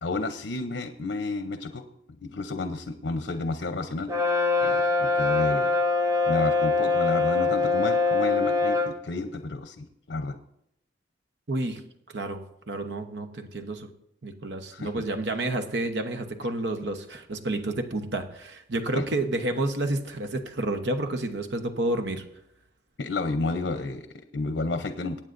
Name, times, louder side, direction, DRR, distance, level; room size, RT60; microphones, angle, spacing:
voice 1, 0.0-4.1 4.6-5.7 6.3-10.4 14.7-14.9 19.0-19.1 23.0-25.2, left 3 dB, 75° left, 8 dB, 0.7 m, -31 dB
Brass instrument, 4.1-9.0, left 4 dB, 20° right, 0.9 m, -23 dB
voice 2, 11.5-11.8 12.1-13.9 14.2-22.2, right 2 dB, 75° right, 7 dB, 1.0 m, -30 dB
23.0 x 9.0 x 2.6 m, 0.79 s
head